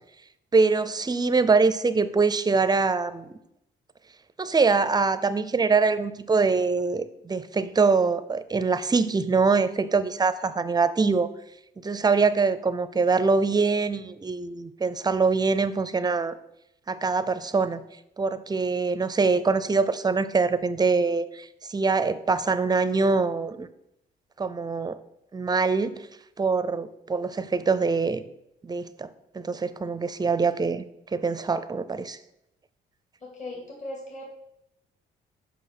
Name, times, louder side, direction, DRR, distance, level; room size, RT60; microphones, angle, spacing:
voice 1, 0.5-3.4 4.4-11.3 11.8-16.4 16.9-17.8 18.2-23.7 24.4-25.0 25.3-26.1 26.4-28.2 28.6-29.1 29.3-30.8 31.1-32.2, right 4 dB, 20° right, 14 dB, 0.5 m, -24 dB
voice 2, 33.2-34.3, left 1 dB, 35° left, -2 dB, 2.3 m, -38 dB
6.3 x 5.6 x 5.9 m, 0.83 s
cardioid pair, 90°, 20 cm